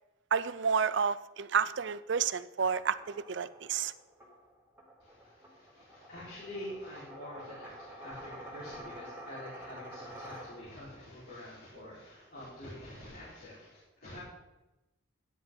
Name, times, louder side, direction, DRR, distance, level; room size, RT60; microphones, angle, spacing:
voice 1, 0.3-3.9, right 6 dB, 60° right, 16 dB, 0.5 m, -30 dB
sound 1, 2.6-10.9, equal, 10° right, 2.0 m, -49 dB
voice 2, 5.0-14.2, left 1 dB, 50° left, -10 dB, 3.9 m, -47 dB
13.0 x 9.9 x 3.7 m, 0.98 s
head